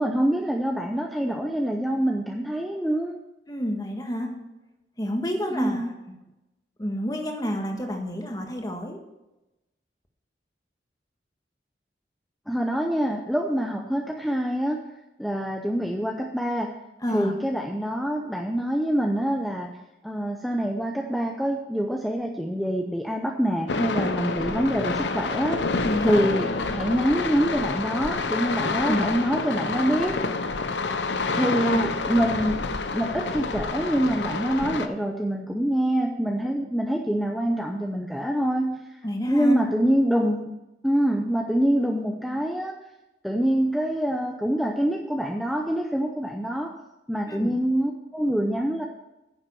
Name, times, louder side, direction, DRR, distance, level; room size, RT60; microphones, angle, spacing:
voice 1, 0.0-3.2 5.5-6.0 12.5-14.8 15.2-16.8 17.1-19.7 20.0-25.7 26.0-30.3 31.3-32.6 32.9-39.0 39.3-40.5 40.8-42.8 43.2-46.8 47.1-48.8, equal, ahead, 2 dB, 0.6 m, -25 dB
voice 2, 3.5-4.3 5.0-6.1 6.8-9.0 17.0-17.3 25.8-26.2 28.8-29.1 31.6-31.9 39.0-39.6 47.3-47.5, equal, 20° left, 3 dB, 1.6 m, -29 dB
sound 1, 23.7-34.9, left 3 dB, 85° left, 0.8 m, -28 dB
9.9 x 7.2 x 6.9 m, 0.98 s
head